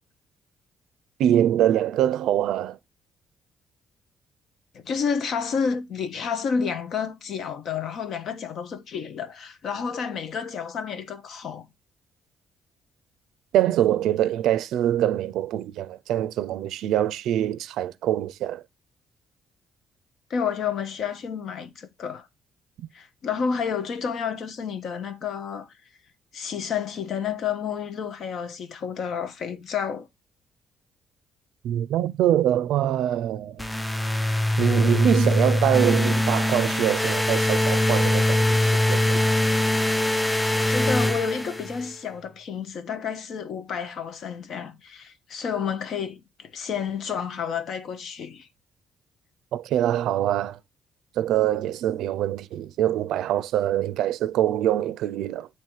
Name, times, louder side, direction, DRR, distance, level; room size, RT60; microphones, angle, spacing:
voice 1, 1.2-2.8 13.5-18.6 31.6-33.7 34.6-39.2 49.5-50.6 51.2-55.5, right 11 dB, 85° right, 0.4 m, -24 dB
voice 2, 4.7-11.6 20.3-22.3 22.9-25.7 26.3-30.1 40.5-48.5, left 6 dB, 65° left, 1.0 m, -30 dB
sound 1, 33.6-41.9, left 1 dB, 10° left, 0.5 m, -22 dB
7.4 x 3.0 x 4.6 m
cardioid pair, 90°, 0 cm